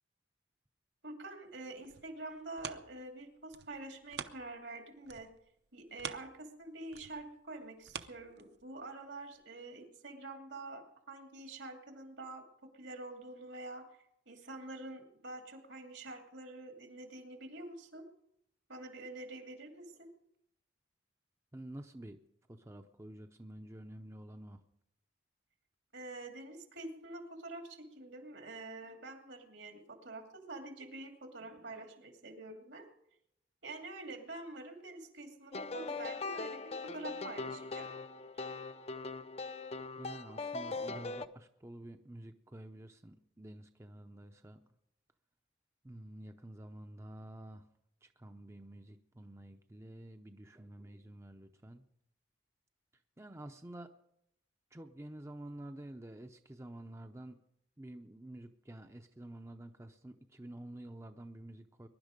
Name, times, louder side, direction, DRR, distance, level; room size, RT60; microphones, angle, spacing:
voice 1, 1.0-5.3 5.7-12.4 12.7-13.8 14.3-18.0 18.7-20.1 25.9-32.9 33.6-37.9 38.3-38.4, right 2 dB, 75° right, 3 dB, 2.6 m, -47 dB
sound 1, 1.6-4.8 5.0-8.9 9.4-9.5, right 7 dB, 60° right, 0.7 m, -47 dB
voice 2, 21.5-22.2 22.5-24.6 40.0-44.6 45.8-47.7 48.0-51.9 52.9-53.9 54.7-57.4 57.8-61.9, right 1 dB, 15° right, 7 dB, 0.6 m, -49 dB
sound 2, 35.5-41.3, left 3 dB, 35° left, 0.5 m, -41 dB
22.0 x 11.0 x 5.2 m, 0.78 s
head